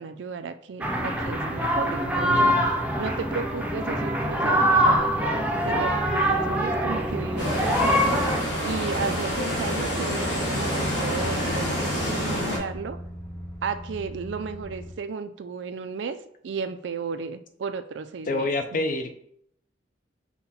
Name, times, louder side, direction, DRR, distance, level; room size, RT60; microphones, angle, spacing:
voice 1, 0.0-2.5 3.0-8.2 8.6-13.0 13.6-16.2 16.4-18.8, right 5 dB, 70° right, 10 dB, 0.4 m, -34 dB
sound 1, 0.8-8.4, equal, 5° right, 0.6 m, -24 dB
sound 2, 0.9-14.9, equal, 25° left, 1.1 m, -40 dB
sound 3, 7.4-12.6, equal, 70° left, 1.5 m, -27 dB
voice 2, 18.3-19.1, left 2 dB, 50° left, 8 dB, 0.5 m, -26 dB
5.7 x 2.2 x 4.2 m, 0.70 s
head